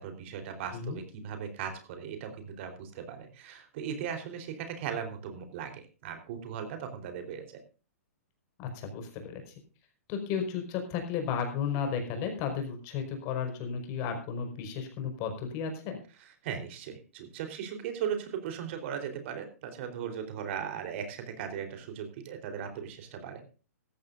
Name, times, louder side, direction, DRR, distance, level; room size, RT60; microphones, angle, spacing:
voice 1, 0.0-7.5 16.4-23.4, right 8 dB, 50° right, 6 dB, 3.9 m, -38 dB
voice 2, 8.6-9.4 10.1-15.9, left 7 dB, 40° left, 5 dB, 5.0 m, -33 dB
17.5 x 14.5 x 2.6 m, 0.35 s
hypercardioid pair, 125°, 8 cm